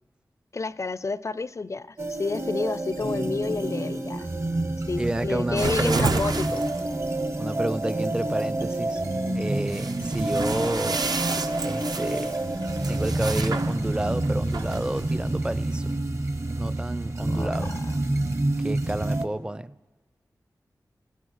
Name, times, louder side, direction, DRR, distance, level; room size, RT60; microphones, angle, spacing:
voice 1, 0.5-4.3 4.9-6.6 17.3-17.9, left 3 dB, 45° left, 19 dB, 0.4 m, -30 dB
sound 1, 2.0-19.3, right 1 dB, 40° right, 1.0 m, -28 dB
voice 2, 5.0-6.6 7.4-9.0 9.3-11.0 11.6-12.4 12.9-16.0 16.5-17.8 18.6-19.8, right 1 dB, 15° right, 17 dB, 0.4 m, -30 dB
sound 2, 5.6-16.7, right 4 dB, 70° right, 0.7 m, -33 dB
18.0 x 11.0 x 6.4 m, 1.2 s
cardioid pair, 40°, 7 cm